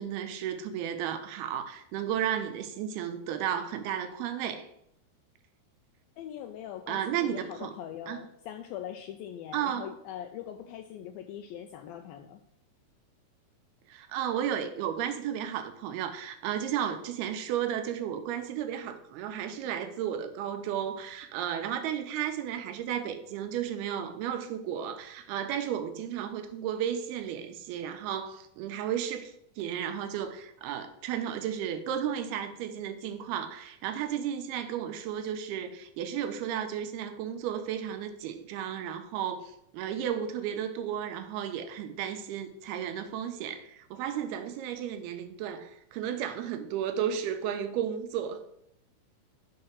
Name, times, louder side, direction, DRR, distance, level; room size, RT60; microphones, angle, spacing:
voice 1, 0.0-4.7 6.9-7.8 8.1-8.2 9.5-9.9 13.9-48.4, right 9 dB, 80° right, 8 dB, 2.7 m, -33 dB
voice 2, 6.2-7.0 7.3-12.4, left 10 dB, 80° left, 6 dB, 2.1 m, -41 dB
6.6 x 5.5 x 7.1 m, 0.74 s
omnidirectional pair, 4.6 m